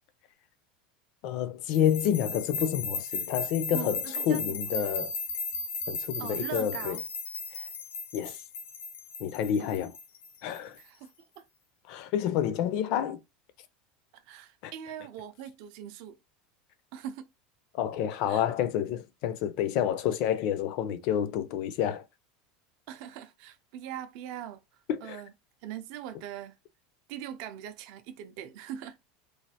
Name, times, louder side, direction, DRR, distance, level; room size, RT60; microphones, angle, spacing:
voice 1, 1.2-5.1 5.9-7.0 8.1-8.4 9.2-9.9 10.4-10.8 11.9-13.2 14.6-14.7 17.7-22.0 24.9-25.2, left 10 dB, 45° left, 0.4 m, -29 dB
sound 1, 1.7-10.8, left 4 dB, 85° left, 0.7 m, -36 dB
voice 2, 3.7-4.7 6.2-7.0 9.6-9.7 10.8-11.5 14.1-16.2 16.9-17.3 18.3-18.5 22.9-24.6 25.0-25.3 25.6-26.5 27.1-29.0, right 10 dB, 50° right, 0.5 m, -41 dB
3.1 x 2.4 x 2.7 m
supercardioid pair, 180°, 0 cm